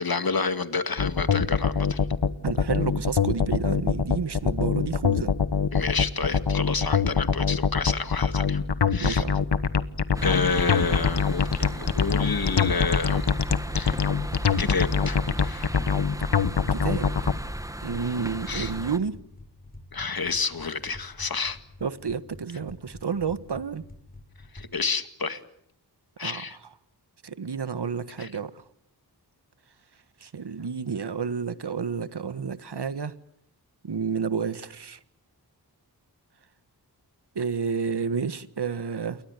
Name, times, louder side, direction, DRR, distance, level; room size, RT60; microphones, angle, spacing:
voice 1, 0.0-2.0 5.7-8.6 8.9-9.2 10.2-13.3 13.8-14.0 14.6-15.7 18.5-18.7 19.9-21.6 24.5-25.4 26.2-26.6 28.2-28.3, left 4 dB, 60° left, 2.1 m, -29 dB
sound 1, 1.0-17.3, left 6 dB, 80° left, 1.3 m, -23 dB
voice 2, 2.4-5.3 9.0-9.4 16.7-17.3 17.8-19.2 21.8-23.8 26.2-26.4 27.2-28.6 30.2-33.1 33.8-35.0 37.3-39.2, right 6 dB, 75° right, 1.5 m, -30 dB
sound 2, 10.1-19.0, right 1 dB, 10° right, 1.4 m, -36 dB
sound 3, 17.8-24.7, left 1 dB, 20° left, 5.4 m, -48 dB
29.0 x 22.5 x 8.2 m
wide cardioid pair, 70°, 40 cm